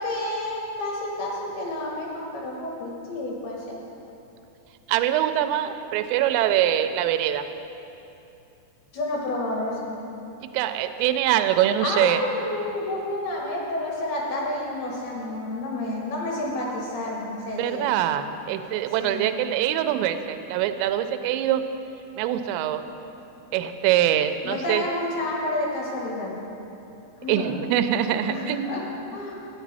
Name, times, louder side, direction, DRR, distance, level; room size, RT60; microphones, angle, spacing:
voice 1, 0.0-3.8 8.9-10.0 11.8-17.9 19.0-19.3 24.4-26.3 27.2-27.5 28.3-28.8 29.1-29.4, left 2 dB, 65° left, -3 dB, 3.2 m, -30 dB
voice 2, 4.9-7.5 10.5-12.2 17.6-21.6 22.2-22.8 23.5-24.8 27.3-28.7, right 11 dB, 85° right, 9 dB, 2.8 m, -23 dB
12.5 x 10.0 x 4.1 m, 2.8 s
omnidirectional pair, 5.2 m